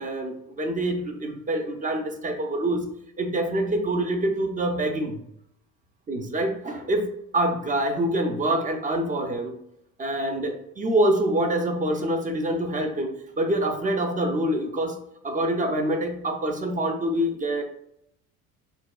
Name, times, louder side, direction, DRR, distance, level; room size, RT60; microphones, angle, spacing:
voice 1, 0.0-2.9 3.2-5.2 6.1-9.5 10.0-17.6, right 1 dB, 20° right, 5 dB, 0.5 m, -26 dB
4.0 x 2.3 x 2.2 m, 0.73 s
hypercardioid pair, 75°, 44 cm